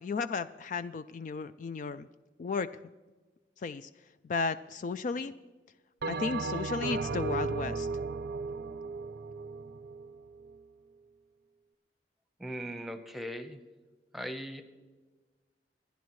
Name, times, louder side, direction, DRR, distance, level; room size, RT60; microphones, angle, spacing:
voice 1, 0.0-2.1 2.4-2.7 3.6-3.9 4.2-5.3 6.1-7.9, left 4 dB, 45° left, 13 dB, 0.3 m, -34 dB
Bell, 6.0-10.6, right 4 dB, 60° right, 0.5 m, -35 dB
voice 2, 12.4-13.6 14.1-14.6, equal, ahead, 8 dB, 0.9 m, -39 dB
29.0 x 10.5 x 3.1 m, 1.3 s
head